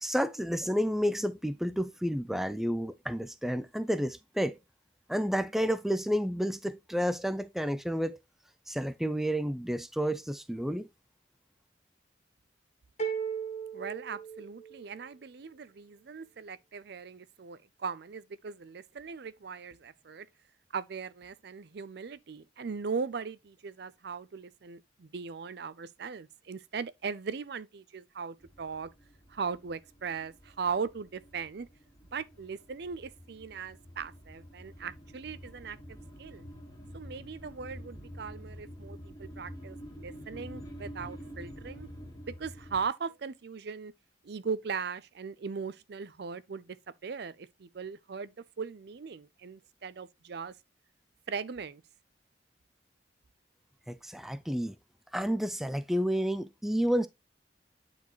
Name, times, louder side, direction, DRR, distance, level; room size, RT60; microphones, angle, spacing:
voice 1, 0.0-4.6 5.1-8.2 8.7-10.9 53.9-54.8 55.1-57.1, equal, ahead, 0.4 m, -30 dB
sound 1, 13.0-15.0, right 7 dB, 40° left, 1.4 m, -36 dB
voice 2, 13.7-20.3 20.7-28.9 29.3-31.7 32.1-36.4 36.9-41.9 42.2-43.9 44.2-46.8 47.0-50.5 51.3-51.8, right 5 dB, 60° right, 0.5 m, -39 dB
sound 2, 28.4-42.9, equal, 20° left, 1.8 m, -48 dB
9.3 x 4.3 x 3.1 m
head